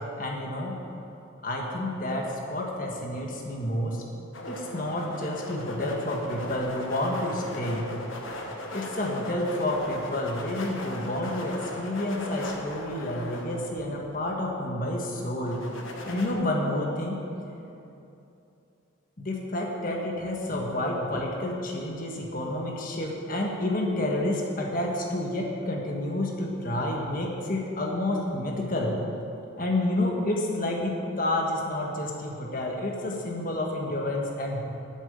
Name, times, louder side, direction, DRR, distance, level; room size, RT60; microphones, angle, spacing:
voice 1, 0.2-0.8 1.4-4.0 4.4-7.9 8.7-15.6 16.0-17.2 19.2-29.0 29.6-34.6, left 1 dB, 40° left, -1 dB, 1.5 m, -29 dB
sound 1, 4.3-14.2 15.5-16.3, left 2 dB, 75° left, 1.3 m, -38 dB
8.9 x 7.3 x 8.0 m, 2.8 s
head